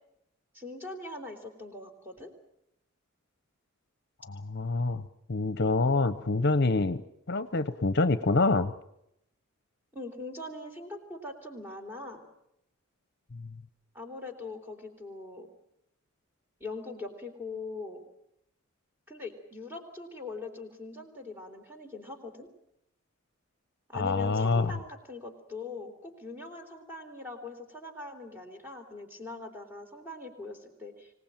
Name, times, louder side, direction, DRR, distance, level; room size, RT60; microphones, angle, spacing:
voice 1, 0.5-2.3 9.9-12.2 13.9-15.5 16.6-18.0 19.1-22.5 23.9-31.1, left 3 dB, 10° right, 4 dB, 3.6 m, -42 dB
voice 2, 4.3-7.0 7.3-8.7 13.4-13.5 23.9-24.8, left 3 dB, 50° left, 13 dB, 0.9 m, -26 dB
25.5 x 18.5 x 9.0 m, 0.80 s
head